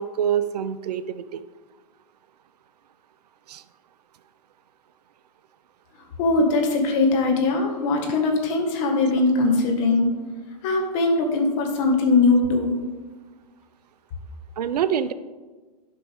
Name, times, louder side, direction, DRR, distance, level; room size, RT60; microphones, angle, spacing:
voice 1, 0.0-1.4 3.5-3.6 14.6-15.1, right 9 dB, 75° right, 14 dB, 0.5 m, -25 dB
voice 2, 6.2-10.1 10.6-12.8, left 3 dB, 50° left, 2 dB, 1.8 m, -21 dB
11.5 x 5.2 x 3.5 m, 1.3 s
hypercardioid pair, 115°, 21 cm